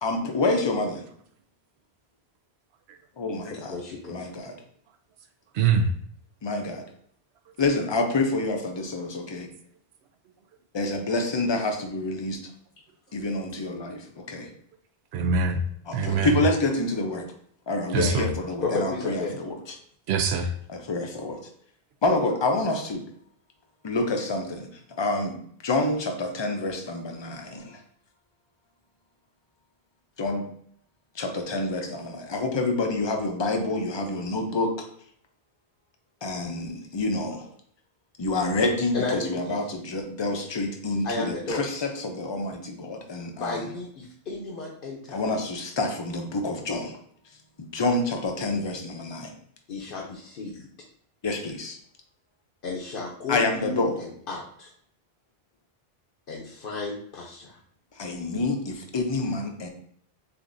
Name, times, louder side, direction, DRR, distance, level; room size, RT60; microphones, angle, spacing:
voice 1, 0.0-1.0 3.2-3.8 4.1-4.5 6.4-6.8 7.6-9.5 10.7-12.4 13.1-14.5 15.9-17.2 17.7-19.7 20.7-21.4 22.0-23.0 23.8-24.7 25.0-25.4 25.6-27.8 30.2-30.4 31.2-34.9 36.2-37.5 38.2-43.6 45.1-46.9 47.6-49.3 51.2-51.8 53.3-54.0 58.0-59.7, left 2 dB, 35° left, 3 dB, 0.5 m, -27 dB
voice 2, 3.7-4.3 18.6-19.3 38.9-39.5 41.0-41.6 43.3-45.4 49.7-50.7 52.6-54.7 56.3-57.6, left 3 dB, 60° left, -2 dB, 0.9 m, -33 dB
voice 3, 5.5-5.9 15.1-15.6 15.9-16.4 17.9-18.3 20.1-20.5, right 5 dB, 85° right, 5 dB, 0.9 m, -23 dB
6.8 x 2.6 x 2.6 m, 0.65 s
omnidirectional pair, 1.1 m